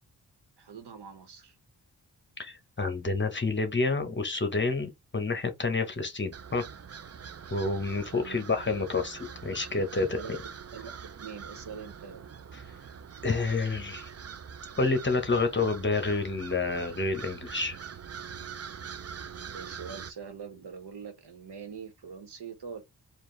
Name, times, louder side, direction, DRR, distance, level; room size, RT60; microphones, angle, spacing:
voice 1, 0.6-1.5 8.0-8.4 10.1-12.3 19.3-22.8, right 6 dB, 90° right, 1.3 m, -44 dB
voice 2, 2.4-6.6 7.5-10.4 13.2-14.1 14.8-17.8, left 3 dB, 30° left, 1.0 m, -29 dB
sound 1, 6.3-20.1, right 7 dB, 40° right, 0.5 m, -44 dB
4.6 x 2.6 x 3.2 m
wide cardioid pair, 130°, 40 cm